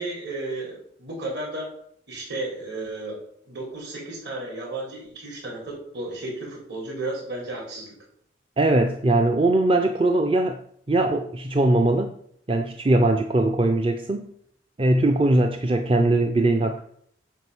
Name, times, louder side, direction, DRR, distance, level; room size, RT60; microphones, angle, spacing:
voice 1, 0.0-1.7 2.1-3.2 3.5-7.9, right 2 dB, 65° right, -2 dB, 4.2 m, -33 dB
voice 2, 8.6-10.6 10.9-12.1 12.5-14.3 14.8-16.8, right 2 dB, 30° right, 5 dB, 0.5 m, -21 dB
9.4 x 4.0 x 7.0 m, 0.66 s
head